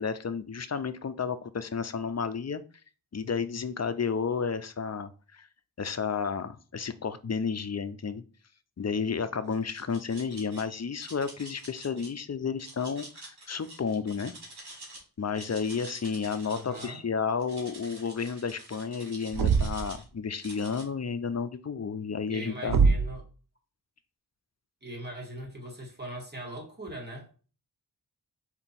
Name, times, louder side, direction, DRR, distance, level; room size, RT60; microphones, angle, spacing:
voice 1, 0.0-2.6 3.1-5.5 5.8-8.2 8.8-14.3 15.2-22.8, left 5 dB, 45° left, 0.5 m, -32 dB
sound 1, 9.5-10.6 11.0-12.1 12.6-15.0 15.3-17.0 17.4-20.0 20.4-20.8, right 1 dB, 85° right, 1.5 m, -47 dB
voice 2, 16.4-17.0 22.3-23.3 24.8-27.3, right 1 dB, 25° right, 1.8 m, -40 dB
Thump thud, 19.3-20.0 22.7-23.2, right 5 dB, 60° right, 0.5 m, -23 dB
4.4 x 2.9 x 4.1 m
wide cardioid pair, 50°, 38 cm